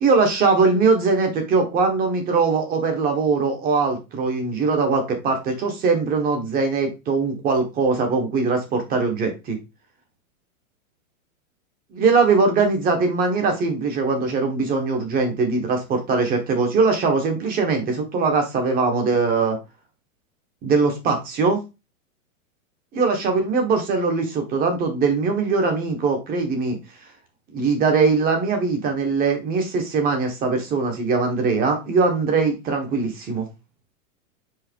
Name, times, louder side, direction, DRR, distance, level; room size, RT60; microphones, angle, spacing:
voice 1, 0.0-9.6 11.9-19.6 20.6-21.6 22.9-26.8 27.5-33.5, right 4 dB, 20° right, 5 dB, 1.4 m, -21 dB
4.9 x 4.3 x 4.6 m, 0.27 s
supercardioid pair, 155°, 42 cm